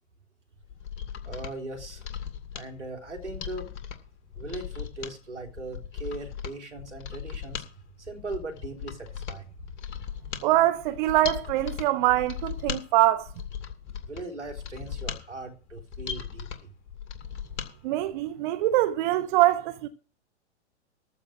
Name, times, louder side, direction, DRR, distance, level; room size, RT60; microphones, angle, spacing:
Mechanisms, 0.6-17.7 18.0-18.1, left 8 dB, 35° left, 2.3 m, -38 dB
voice 1, 1.2-2.1 2.5-3.7 4.4-7.6 8.0-9.5 14.1-16.7 17.6-17.7, right 2 dB, 85° right, 3.7 m, -39 dB
voice 2, 10.4-13.3 17.8-19.9, right 15 dB, 45° right, 1.1 m, -23 dB
14.0 x 5.3 x 7.7 m
figure-of-eight pair, 110°, 35 cm